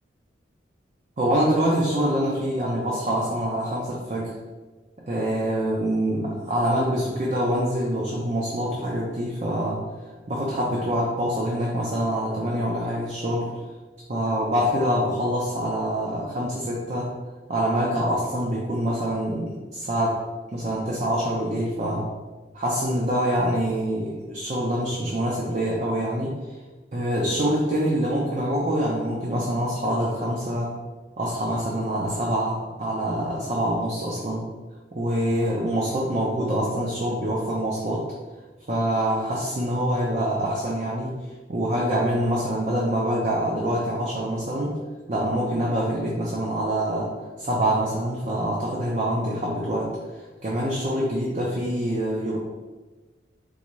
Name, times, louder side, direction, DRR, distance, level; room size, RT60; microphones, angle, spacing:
voice 1, 1.2-4.3 5.1-9.8 10.3-13.5 14.1-17.1 17.5-20.2 20.5-22.1 22.5-26.4 26.9-30.8 31.2-34.5 34.9-38.1 38.7-41.2 41.5-44.8 45.1-49.9 50.4-52.4, equal, 40° right, -4 dB, 0.6 m, -25 dB
3.8 x 3.5 x 3.1 m, 1.3 s
head